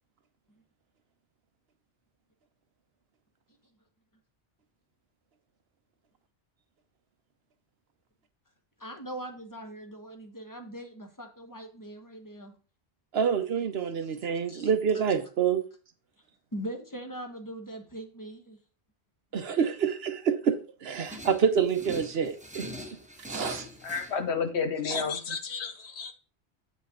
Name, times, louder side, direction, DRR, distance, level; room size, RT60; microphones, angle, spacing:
voice 1, 8.8-12.5 13.8-14.1 14.5-15.0 16.5-18.6, right 1 dB, 20° left, 1.1 m, -41 dB
voice 2, 13.1-15.6 19.3-20.5 20.8-22.7 23.3-23.7 24.9-25.0, right 7 dB, 65° right, 1.0 m, -27 dB
sound 1, 21.0-24.1, equal, 10° right, 0.8 m, -42 dB
voice 3, 23.8-26.1, left 5 dB, 75° left, 1.2 m, -31 dB
8.0 x 5.5 x 3.7 m
omnidirectional pair, 1.1 m